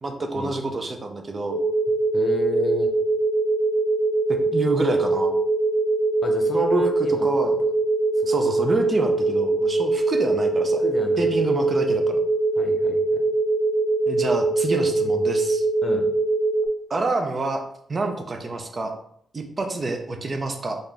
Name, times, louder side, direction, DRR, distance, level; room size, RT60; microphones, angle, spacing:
voice 1, 0.0-1.6 4.3-5.3 6.5-6.9 7.2-7.5 8.3-10.8 11.2-12.2 14.1-15.6 16.9-17.6 17.9-18.9 19.3-20.8, right 3 dB, 35° right, 4 dB, 0.6 m, -27 dB
sound 1, 1.5-16.7, right 2 dB, 90° right, 0.8 m, -22 dB
voice 2, 2.1-2.9 6.2-7.3 8.2-8.3 10.8-11.3 12.6-13.2 15.8-16.1, left 2 dB, 40° left, 4 dB, 0.7 m, -31 dB
4.1 x 2.4 x 3.4 m, 0.68 s
cardioid pair, 120°, 0 cm